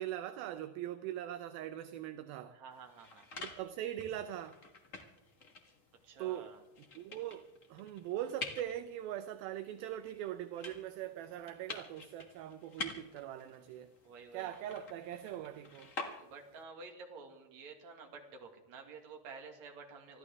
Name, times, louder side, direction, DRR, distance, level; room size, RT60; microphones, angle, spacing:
voice 1, 0.0-2.6 3.4-4.6 6.2-6.5 7.0-13.9 14.3-15.9, right 12 dB, 80° right, 2.4 m, -41 dB
voice 2, 2.4-3.3 6.0-6.6 14.0-14.5 16.2-20.2, right 4 dB, 50° right, 3.0 m, -51 dB
sound 1, 2.7-16.6, left 3 dB, 60° left, 0.8 m, -49 dB
25.5 x 14.0 x 3.6 m
omnidirectional pair, 4.4 m